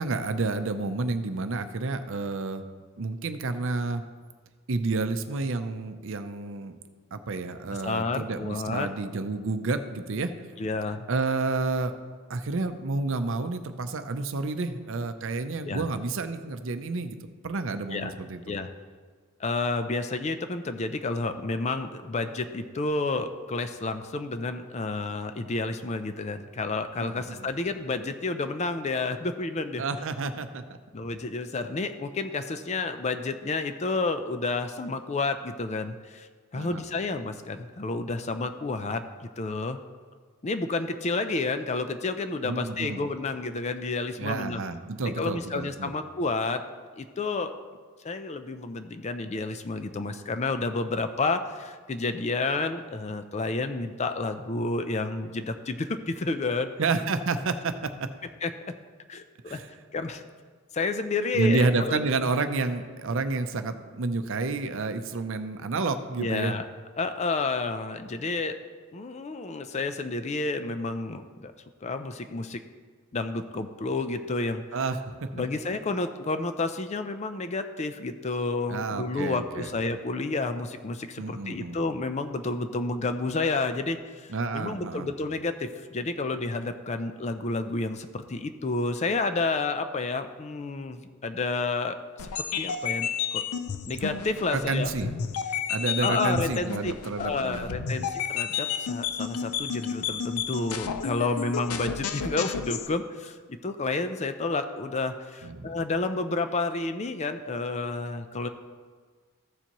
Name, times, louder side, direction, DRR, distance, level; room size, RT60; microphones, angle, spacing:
voice 1, 0.0-2.6 3.0-4.0 4.7-6.8 7.1-10.3 11.1-11.9 12.3-17.2 17.4-18.4 27.0-27.5 29.8-30.6 36.5-36.8 42.4-43.0 44.2-45.9 56.8-57.7 58.0-58.1 59.5-59.7 61.3-66.5 74.7-75.0 78.7-79.7 81.2-81.8 84.3-85.1 94.5-95.1 95.7-98.1 105.4-105.7, right 3 dB, 60° right, 9 dB, 0.6 m, -30 dB
voice 2, 7.8-8.9 10.6-11.1 15.6-15.9 17.9-18.1 18.5-18.7 19.4-29.8 30.9-36.3 36.5-39.8 40.4-44.6 45.2-46.7 47.0-47.5 48.0-56.7 58.4-58.5 59.1-59.6 59.9-60.2 60.7-62.0 66.2-66.7 67.0-68.6 68.9-71.5 71.8-72.6 73.1-74.6 75.3-93.4 93.9-94.9 96.0-108.5, left 3 dB, 30° left, 9 dB, 0.4 m, -30 dB
sound 1, 92.2-102.9, left 7 dB, 85° left, 0.5 m, -32 dB
14.5 x 7.0 x 3.0 m, 1.5 s
head